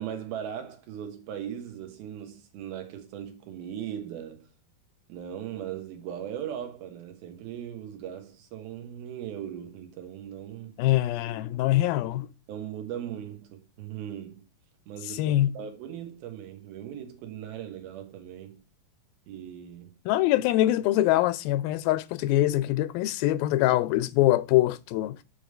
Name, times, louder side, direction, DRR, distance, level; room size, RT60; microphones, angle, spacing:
voice 1, 0.0-4.5 5.1-10.8 12.5-14.4 14.9-18.6 19.3-19.9, right 10 dB, 85° right, 3.2 m, -39 dB
voice 2, 10.8-12.3 15.1-15.6 20.1-25.2, left 15 dB, 80° left, 2.3 m, -24 dB
8.5 x 3.5 x 6.6 m
omnidirectional pair, 4.2 m